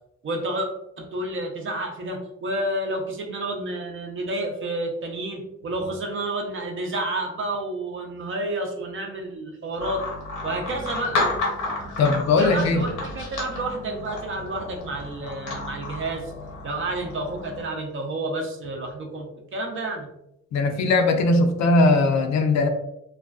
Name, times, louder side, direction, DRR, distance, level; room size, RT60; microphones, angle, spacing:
voice 1, 0.2-0.7 1.0-10.0 10.4-11.2 11.8-11.9 12.3-16.3 16.6-20.1, right 1 dB, 40° right, 2 dB, 0.6 m, -30 dB
sound 1, 9.8-17.7, left 2 dB, 80° left, 0.8 m, -32 dB
voice 2, 12.0-12.9 20.5-22.7, left 2 dB, 65° left, 5 dB, 0.5 m, -19 dB
2.4 x 2.2 x 2.3 m, 0.83 s
cardioid pair, 90°, 30 cm